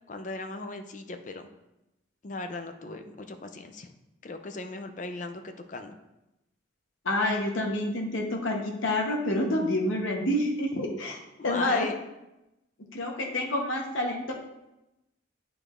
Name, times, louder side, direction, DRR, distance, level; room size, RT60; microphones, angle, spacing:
voice 1, 0.1-1.5 2.2-3.9 4.2-5.4 5.7-5.9 11.4-12.0, left 3 dB, 40° left, 7 dB, 0.5 m, -37 dB
voice 2, 7.0-11.2 11.4-11.9 12.9-14.3, left 1 dB, 85° left, 1 dB, 1.0 m, -28 dB
8.8 x 4.8 x 2.5 m, 0.93 s
head